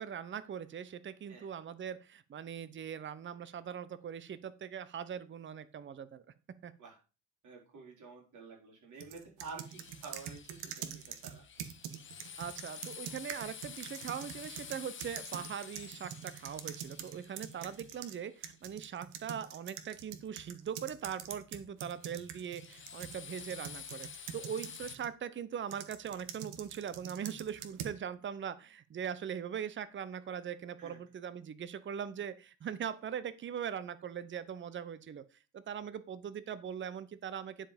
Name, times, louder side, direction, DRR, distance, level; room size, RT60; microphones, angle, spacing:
voice 1, 0.0-6.2 6.6-6.7 12.4-35.2 35.5-37.7, right 8 dB, 30° right, 15 dB, 0.8 m, -41 dB
voice 2, 7.4-11.4 30.8-31.0, right 4 dB, 50° right, -1 dB, 4.8 m, -49 dB
sound 1, 9.0-18.2 18.4-25.1 25.7-28.0, right 9 dB, 80° right, 1.4 m, -45 dB
Drill, 9.6-18.5 21.9-24.9, left 8 dB, 30° left, 0.9 m, -50 dB
10.0 x 4.9 x 5.2 m, 0.32 s
cardioid pair, 95°, 37 cm